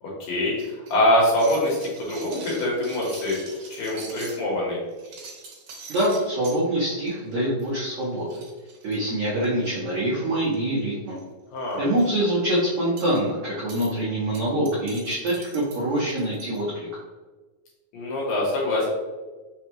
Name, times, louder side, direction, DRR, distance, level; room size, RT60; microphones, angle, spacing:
voice 1, 0.0-3.4 3.7-4.8 11.5-11.8 17.9-18.9, left 1 dB, 70° left, -4 dB, 2.5 m, -24 dB
sound 1, 0.6-4.4 4.9-6.6 7.1-7.3 7.6-7.7 8.0-8.1 8.3-9.7 10.4-10.8 11.1-11.2 11.6-12.0 13.0-13.2 13.7-13.9 14.3-16.6, right 4 dB, 65° right, 2.4 m, -43 dB
voice 2, 5.9-8.3 8.8-11.2 11.8-16.9, right 1 dB, 85° right, -8 dB, 1.6 m, -25 dB
6.1 x 2.3 x 2.9 m, 1.3 s
omnidirectional pair, 4.5 m